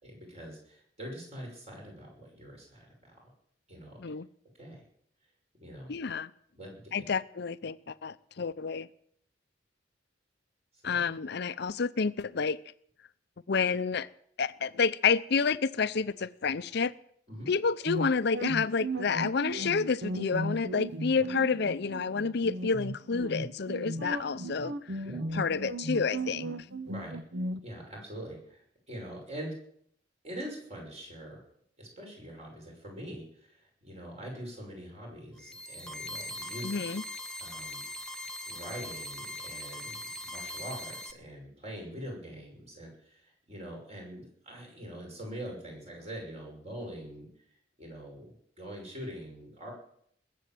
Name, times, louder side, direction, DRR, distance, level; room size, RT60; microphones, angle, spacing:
voice 1, 0.0-3.3 3.7-4.0 4.6-4.8 5.6-5.9 6.5-7.1 10.8-11.0 17.3-17.5 25.0-25.2 26.9-27.2 27.6-29.5 30.2-31.4 31.8-36.8 37.4-38.0 38.5-47.3 47.8-49.7, equal, 35° right, 6.1 m, -44 dB
voice 2, 5.9-6.3 6.9-8.9 10.8-12.6 13.5-14.1 14.4-16.9 17.5-25.0 25.3-26.5 36.6-37.0, left 5 dB, 60° left, 0.6 m, -29 dB
sound 1, 17.9-27.6, right 1 dB, 60° right, 0.8 m, -36 dB
sound 2, 35.4-41.1, left 1 dB, 5° left, 0.8 m, -41 dB
20.5 x 8.4 x 7.7 m
head